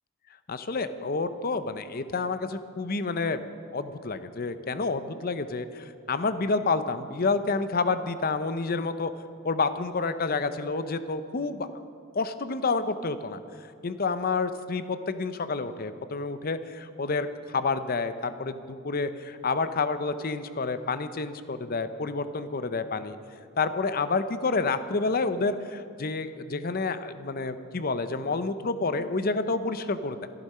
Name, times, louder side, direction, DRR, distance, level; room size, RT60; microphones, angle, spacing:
voice 1, 0.5-3.4 3.7-9.1 9.4-11.7 12.1-13.4 13.8-23.2 23.6-30.3, left 4 dB, 45° left, 11 dB, 0.6 m, -29 dB
14.0 x 12.0 x 5.6 m, 2.5 s
head